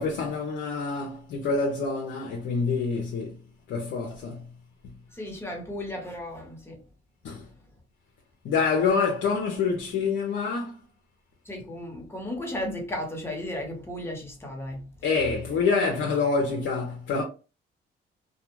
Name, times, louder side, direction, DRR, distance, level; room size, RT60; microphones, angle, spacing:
voice 1, 0.0-3.4 3.7-4.5 4.8-4.9 7.2-7.5 8.4-10.8 15.0-17.2, left 4 dB, 70° left, 0.6 m, -26 dB
voice 2, 5.1-6.8 11.4-14.9, left 1 dB, 10° left, 1.1 m, -35 dB
2.2 x 2.2 x 3.0 m
cardioid pair, 90°, 20 cm